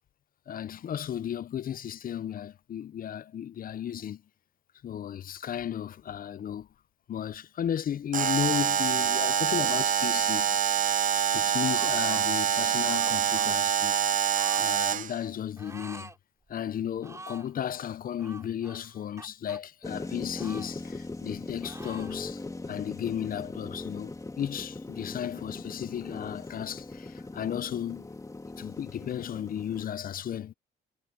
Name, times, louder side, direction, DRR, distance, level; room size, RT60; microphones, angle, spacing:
voice 1, 0.5-4.2 4.8-6.7 7.1-10.7 11.3-14.0 14.6-16.1 16.5-22.4 22.7-28.1 28.6-30.5, left 9 dB, 45° left, 0.5 m, -34 dB
Alarm, 8.1-15.2, right 9 dB, 40° right, 0.5 m, -26 dB
sound 1, 11.7-12.2 12.8-13.5 14.3-14.7 15.6-16.2 16.5-16.6 17.0-17.5 18.2-19.6 20.3-21.3 21.6-22.2, right 2 dB, 15° right, 3.6 m, -47 dB
sound 2, 19.8-29.8, left 2 dB, 15° left, 2.7 m, -40 dB
cardioid pair, 90°, 20 cm